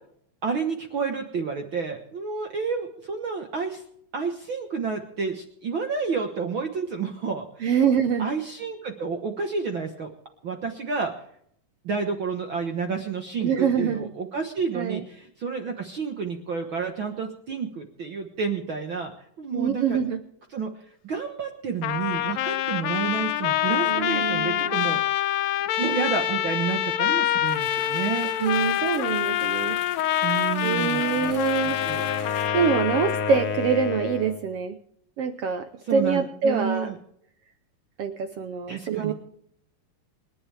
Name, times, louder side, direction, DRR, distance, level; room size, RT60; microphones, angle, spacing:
voice 1, 0.4-3.8 4.1-7.7 8.2-10.1 10.4-11.1 11.8-19.1 19.4-20.0 20.5-20.7 21.0-25.0 25.8-28.3 30.2-31.3 31.7-32.0 35.9-37.0 38.7-39.1, right 5 dB, 55° right, 4 dB, 1.4 m, -30 dB
voice 2, 7.6-8.3 13.4-14.1 14.7-15.0 19.5-20.2 23.9-25.0 28.4-29.8 30.6-31.8 32.3-34.8 35.2-36.9 38.0-39.1, right 6 dB, 80° right, 8 dB, 1.3 m, -25 dB
Trumpet, 21.8-33.4, left 12 dB, 85° left, 2.4 m, -26 dB
sound 1, 27.4-32.5, left 7 dB, 70° left, 3.0 m, -42 dB
Wind instrument woodwind instrument, 30.9-34.5, left 5 dB, 55° left, 1.6 m, -31 dB
28.0 x 11.0 x 3.4 m, 0.68 s
omnidirectional pair, 3.9 m